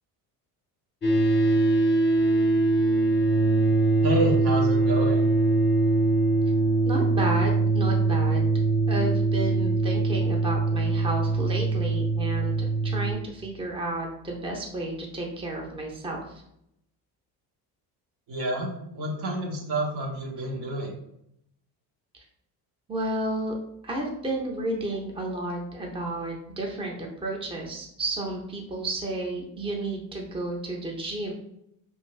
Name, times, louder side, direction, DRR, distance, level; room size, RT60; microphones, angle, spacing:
sound 1, 1.0-13.1, right 3 dB, 25° left, 0.8 m, -22 dB
voice 1, 4.0-5.3 18.3-20.9, right 1 dB, 70° right, -1 dB, 1.1 m, -29 dB
voice 2, 6.8-8.5 8.9-16.2 22.1-22.2 22.9-23.5 23.8-31.3, right 2 dB, 15° right, -1 dB, 0.7 m, -32 dB
2.8 x 2.6 x 3.2 m, 0.75 s
cardioid pair, 90°, 41 cm